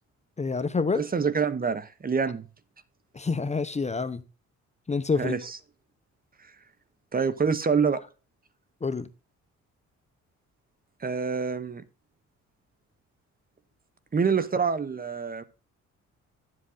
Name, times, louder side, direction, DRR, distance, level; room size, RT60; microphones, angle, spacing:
voice 1, 0.4-1.0 3.1-4.2 4.9-5.3 8.8-9.1, left 4 dB, 20° left, 0.8 m, -27 dB
voice 2, 0.9-2.5 5.2-5.6 7.1-8.0 11.0-11.8 14.1-15.4, right 5 dB, 30° right, 0.9 m, -26 dB
11.5 x 7.7 x 3.8 m
cardioid pair, 90°, 30 cm